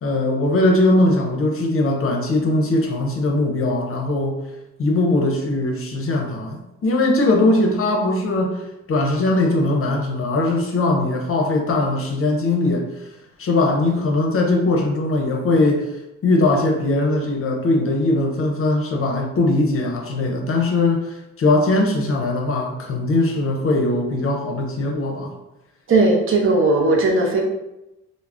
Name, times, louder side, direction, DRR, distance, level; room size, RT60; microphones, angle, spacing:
voice 1, 0.0-4.4 4.8-8.6 8.9-12.9 13.4-15.9 16.2-25.3, left 2 dB, 45° left, 1 dB, 0.6 m, -20 dB
voice 2, 25.9-27.4, right 2 dB, 45° right, 0 dB, 0.6 m, -17 dB
2.3 x 2.1 x 3.3 m, 0.92 s
cardioid pair, 90°, 30 cm